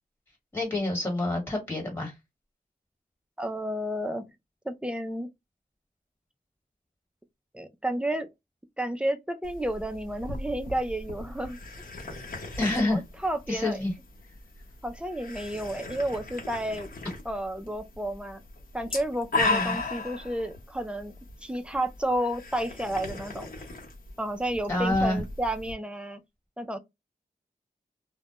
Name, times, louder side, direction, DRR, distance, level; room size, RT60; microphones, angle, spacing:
voice 1, 0.5-2.1 12.6-13.0 13.5-13.9 19.4-19.8 24.7-25.2, left 1 dB, 15° left, 1.3 m, -27 dB
voice 2, 3.4-4.3 4.6-5.3 7.5-8.3 8.8-11.6 12.8-13.8 14.8-16.9 17.3-18.4 18.7-21.1 21.4-23.5 24.2-26.2 26.6-26.8, right 1 dB, 5° right, 0.3 m, -31 dB
sound 1, 9.4-25.7, left 3 dB, 65° left, 0.8 m, -37 dB
2.1 x 2.1 x 2.8 m
wide cardioid pair, 125°, 16 cm